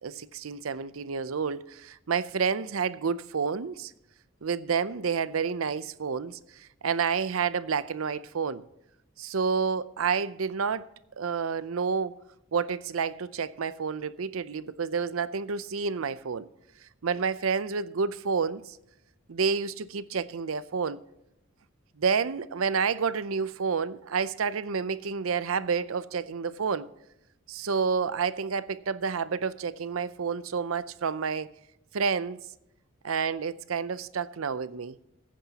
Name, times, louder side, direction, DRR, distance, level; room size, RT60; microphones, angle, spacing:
voice 1, 0.0-3.9 4.4-8.6 9.2-10.9 11.2-12.1 12.5-16.5 17.0-18.8 19.3-21.0 22.0-26.9 27.5-31.5 31.9-32.4 33.0-35.0, right 5 dB, 90° right, 0.6 m, -29 dB
20.5 x 9.9 x 2.9 m
head